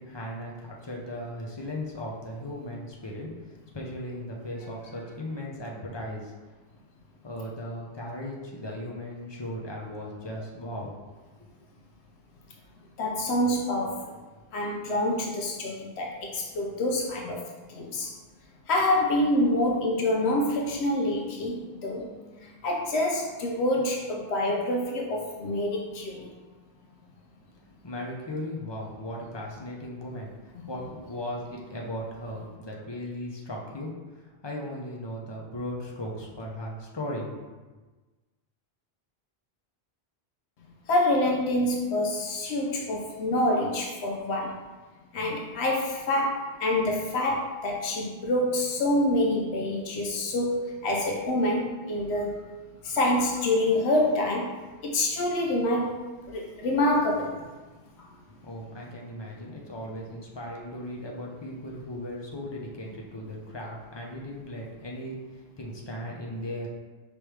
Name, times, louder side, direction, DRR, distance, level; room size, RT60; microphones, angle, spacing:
voice 1, 0.0-6.3 7.2-10.9 27.4-33.9 34.4-37.3 58.4-65.2 65.6-66.7, left 1 dB, 30° left, -2 dB, 0.6 m, -37 dB
voice 2, 13.0-14.1 14.5-17.4 17.7-18.1 18.7-22.1 22.6-26.3 40.9-44.6 45.1-52.3 52.8-54.5 54.8-56.0 56.3-57.4, left 1 dB, 85° left, 0 dB, 0.9 m, -26 dB
5.1 x 3.1 x 3.2 m, 1.3 s
omnidirectional pair, 1.1 m